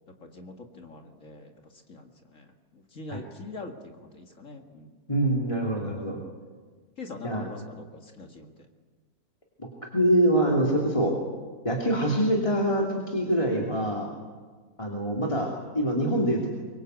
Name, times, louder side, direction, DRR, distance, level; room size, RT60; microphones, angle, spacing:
voice 1, 0.2-4.9 7.0-8.7, left 3 dB, 55° left, 3 dB, 2.3 m, -44 dB
voice 2, 5.1-6.2 7.2-7.4 9.6-9.7 9.9-11.1 11.6-14.1 14.8-15.5 15.7-16.5, right 1 dB, 20° left, -2 dB, 3.1 m, -24 dB
24.0 x 23.5 x 8.2 m, 1.4 s
omnidirectional pair, 1.6 m